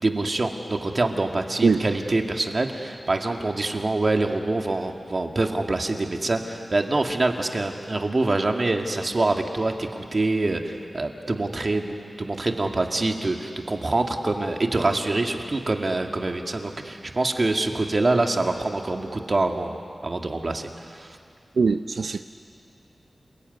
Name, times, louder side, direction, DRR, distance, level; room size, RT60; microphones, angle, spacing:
voice 1, 0.0-19.8 20.0-21.2, right 2 dB, 40° right, 3 dB, 2.2 m, -25 dB
voice 2, 21.6-22.2, right 4 dB, 85° right, 8 dB, 0.6 m, -21 dB
29.0 x 21.0 x 9.5 m, 2.5 s
wide cardioid pair, 95°, 0 cm